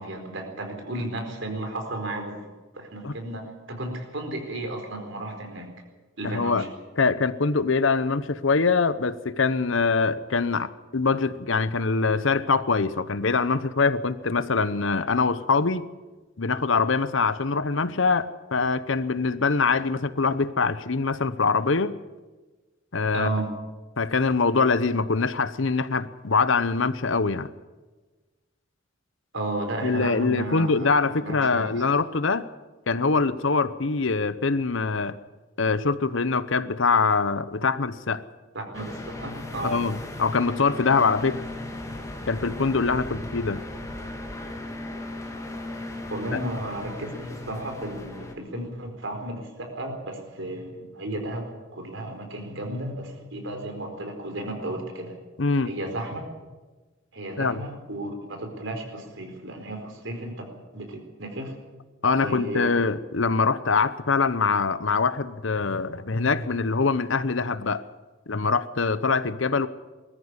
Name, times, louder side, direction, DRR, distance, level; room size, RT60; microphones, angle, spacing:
voice 1, 0.0-2.4 2.7-3.4 3.7-5.7 6.2-6.7 23.1-23.5 29.3-31.7 38.5-39.8 46.1-51.4 51.7-55.2 55.6-56.2 57.1-60.5 60.7-61.5 62.2-62.8, right 1 dB, 65° right, 4 dB, 4.6 m, -33 dB
voice 2, 6.2-6.6 7.0-15.9 16.4-22.0 22.9-23.3 24.0-27.5 29.8-32.5 32.9-35.2 35.6-38.2 39.6-41.4 42.3-43.6 55.4-55.7 57.4-57.6 62.0-67.8 68.3-69.7, left 4 dB, 70° left, 14 dB, 0.9 m, -24 dB
sound 1, 38.7-48.3, left 1 dB, 15° left, 2.9 m, -37 dB
21.0 x 13.5 x 9.9 m, 1.3 s
head